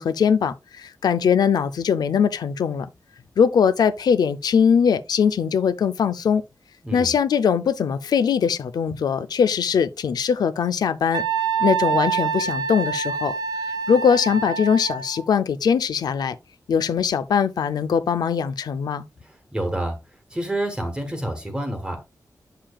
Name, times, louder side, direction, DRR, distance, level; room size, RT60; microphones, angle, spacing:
voice 1, 0.0-2.9 3.4-6.4 6.9-11.2 11.6-13.3 13.6-16.4 16.7-19.0, left 7 dB, 85° left, 0.5 m, -21 dB
Wind instrument woodwind instrument, 11.1-15.2, right 6 dB, 85° right, 0.6 m, -26 dB
voice 2, 19.2-20.0 20.3-22.0, right 1 dB, 15° right, 1.3 m, -28 dB
7.5 x 6.8 x 2.3 m
wide cardioid pair, 150°, 7 cm